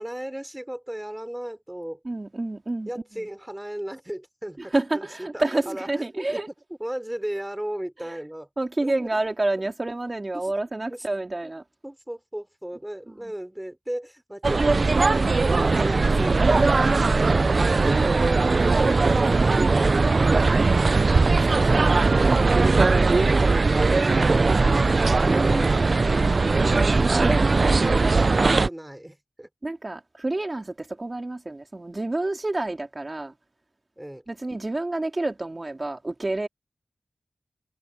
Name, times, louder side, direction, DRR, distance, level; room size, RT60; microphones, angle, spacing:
voice 1, 0.0-2.0 2.9-6.4 6.8-8.5 8.8-8.9 10.3-10.4 10.9-11.1 11.4-11.5 11.8-18.7 19.0-20.4 20.7-21.0 21.4-23.4 23.7-24.5 25.2-26.3 27.0-29.5 34.0-34.2, right 1 dB, 10° right, 4.2 m, -36 dB
voice 2, 2.0-2.9 3.2-3.3 4.6-6.5 8.0-8.2 8.6-11.6 24.1-25.7 26.3-26.8 27.1-27.4 29.6-33.3 34.3-36.5, right 2 dB, 35° right, 3.0 m, -29 dB
sound 1, 14.4-28.7, right 3 dB, 55° right, 0.6 m, -19 dB
cardioid pair, 45°, 0 cm